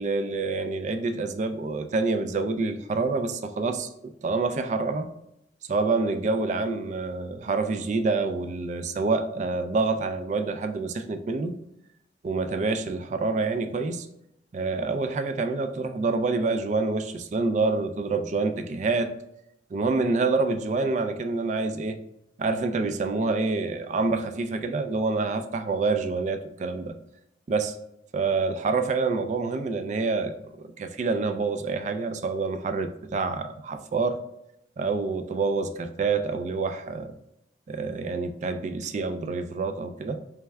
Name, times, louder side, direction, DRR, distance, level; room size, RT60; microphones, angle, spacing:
voice 1, 0.0-5.1 5.7-11.5 12.2-14.1 14.5-19.1 19.7-22.0 22.4-26.9 27.5-27.8 28.1-34.2 34.8-37.1 37.7-40.2, right 3 dB, 45° right, 0.3 m, -27 dB
3.4 x 3.3 x 3.3 m
head